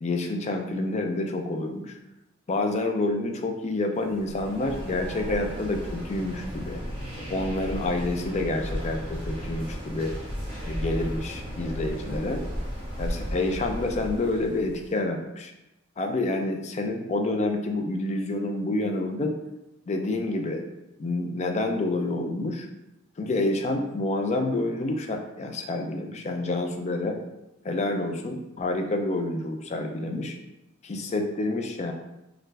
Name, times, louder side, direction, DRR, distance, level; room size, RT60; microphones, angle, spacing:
voice 1, 0.0-2.0 2.5-6.8 7.3-10.1 10.6-12.4 13.0-15.5 16.0-19.4 19.9-20.6 21.0-22.7 23.2-27.2 27.6-30.4 30.8-31.9, left 2 dB, 35° left, 5 dB, 0.4 m, -28 dB
sound 1, 4.1-14.9, equal, 25° right, 1.0 m, -35 dB
3.2 x 2.4 x 3.2 m, 0.93 s
head